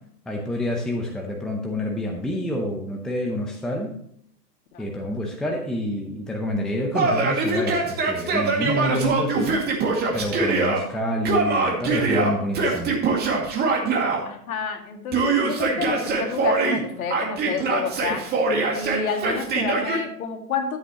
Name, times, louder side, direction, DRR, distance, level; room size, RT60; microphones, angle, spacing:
voice 1, 0.3-3.9 4.8-9.6 10.1-13.0, left 1 dB, ahead, 1 dB, 0.6 m, -28 dB
Yell, 6.9-10.8 11.3-14.2 15.1-16.8 17.1-20.0, right 3 dB, 20° right, 2.2 m, -23 dB
voice 2, 14.3-18.3 18.7-20.8, left 5 dB, 55° left, 4 dB, 2.2 m, -29 dB
12.5 x 8.3 x 2.9 m, 0.69 s
hypercardioid pair, 125°, 48 cm